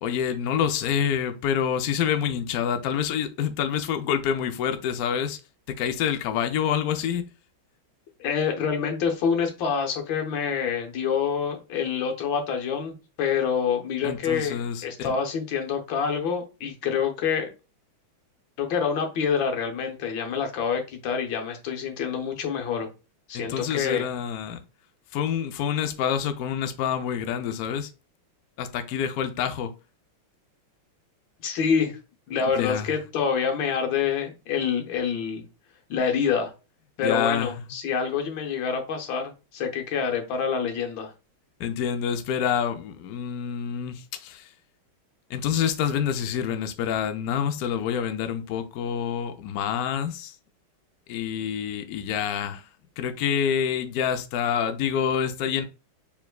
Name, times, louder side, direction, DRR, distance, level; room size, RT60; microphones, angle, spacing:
voice 1, 0.0-5.4 5.8-7.2 14.0-15.1 23.3-24.6 25.1-27.9 28.6-29.7 32.6-32.9 37.0-37.5 41.6-44.5 45.3-50.4 51.1-52.7 53.0-55.6, left 8 dB, 90° left, 0.8 m, -27 dB
voice 2, 8.2-17.5 18.6-22.9 23.3-24.0 31.4-32.0 32.3-35.4 35.9-36.5 37.0-41.1, left 6 dB, 70° left, 1.6 m, -27 dB
4.7 x 3.5 x 2.2 m
omnidirectional pair, 2.3 m